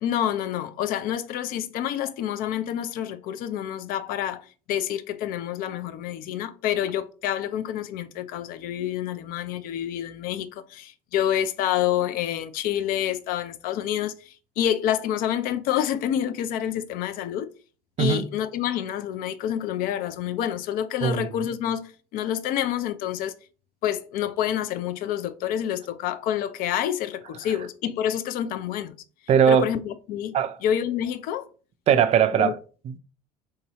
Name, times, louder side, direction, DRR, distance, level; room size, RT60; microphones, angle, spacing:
voice 1, 0.0-17.5 18.0-23.3 23.8-28.9 29.5-30.4 30.6-31.5 32.4-32.5, left 10 dB, 50° left, 0.4 m, -28 dB
voice 2, 18.0-18.3 21.0-21.3 29.3-29.7 30.3-30.6 31.9-32.6 32.9-33.0, right 8 dB, 35° right, 0.4 m, -20 dB
3.8 x 2.7 x 2.9 m
figure-of-eight pair, 65°, 19 cm